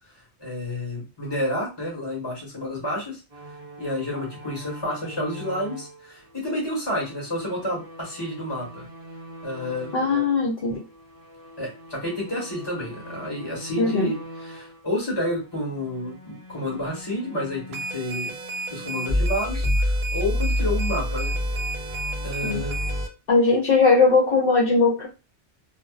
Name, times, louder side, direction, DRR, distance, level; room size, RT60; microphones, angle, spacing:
voice 1, 0.4-3.2 3.8-8.9 9.4-10.0 11.6-14.2 14.5-18.4 18.7-21.4 22.2-22.9, left 1 dB, 25° left, -4 dB, 1.2 m, -30 dB
sound 1, 3.3-10.4 10.7-14.8 15.4-23.1, left 1 dB, 40° right, 0.6 m, -32 dB
voice 2, 9.9-10.8 13.8-14.1 22.4-22.6 23.3-25.1, left 4 dB, 60° left, -2 dB, 0.8 m, -19 dB
sound 2, 17.7-23.1, right 3 dB, 75° right, 0.8 m, -34 dB
2.5 x 2.2 x 2.3 m, 0.30 s
omnidirectional pair, 1.1 m